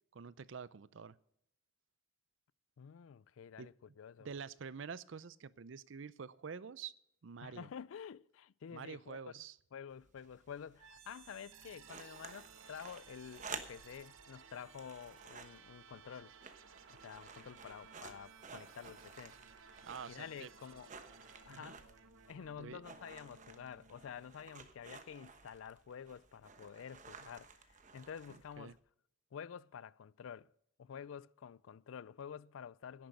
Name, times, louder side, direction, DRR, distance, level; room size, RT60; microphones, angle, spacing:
voice 1, 0.1-1.1 3.6-3.7 4.2-6.9 7.2-7.7 8.7-9.6 19.8-20.5 21.5-21.7 22.6-22.8 28.6-28.8, right 6 dB, 65° right, 0.5 m, -47 dB
voice 2, 2.8-4.3 7.4-9.4 9.7-16.3 16.9-19.4 20.1-20.9 21.2-21.9 22.3-28.8 29.3-30.5 30.8-33.1, left 7 dB, 85° left, 0.4 m, -50 dB
sound 1, 9.9-28.8, right 5 dB, 40° right, 1.1 m, -54 dB
sound 2, 10.8-24.7, right 6 dB, 90° right, 1.0 m, -59 dB
10.5 x 10.5 x 6.5 m
head